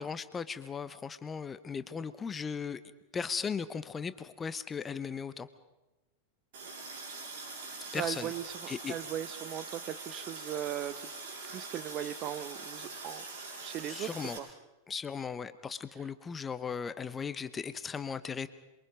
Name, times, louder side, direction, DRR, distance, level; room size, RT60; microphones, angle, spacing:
voice 1, 0.0-2.8 3.1-5.5 7.9-8.3 8.7-8.9 13.8-14.4 14.9-18.5, left 6 dB, 20° left, 13 dB, 0.9 m, -37 dB
Water tap faucet, 6.5-14.4, right 3 dB, 55° right, 7.1 m, -43 dB
voice 2, 7.9-8.6 8.9-11.1 11.5-13.2 13.6-14.1 14.4-14.5, right 11 dB, 35° right, 14 dB, 1.0 m, -38 dB
28.0 x 23.0 x 5.2 m, 1.0 s
figure-of-eight pair, 90°, 0 cm